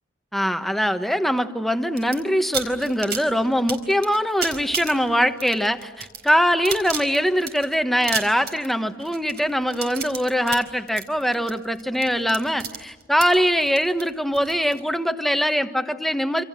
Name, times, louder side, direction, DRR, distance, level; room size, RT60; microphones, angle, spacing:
voice 1, 0.3-16.4, equal, ahead, 8 dB, 1.3 m, -22 dB
sound 1, 2.0-2.2 2.5-14.8, right 7 dB, 55° right, 4.3 m, -32 dB
28.0 x 27.5 x 7.5 m, 1.2 s
head